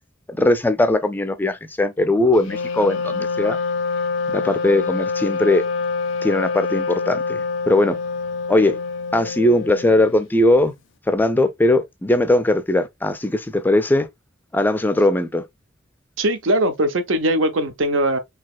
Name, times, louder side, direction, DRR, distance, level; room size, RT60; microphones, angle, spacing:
voice 1, 0.3-3.6 4.3-5.6 6.2-8.0 8.5-8.8 9.1-10.7 11.1-14.1 14.5-15.4, left 1 dB, 10° left, 0.3 m, -19 dB
Wind instrument woodwind instrument, 2.4-10.2, left 4 dB, 75° left, 0.5 m, -26 dB
voice 2, 16.2-18.2, right 1 dB, 85° right, 0.7 m, -20 dB
4.1 x 2.8 x 2.4 m
head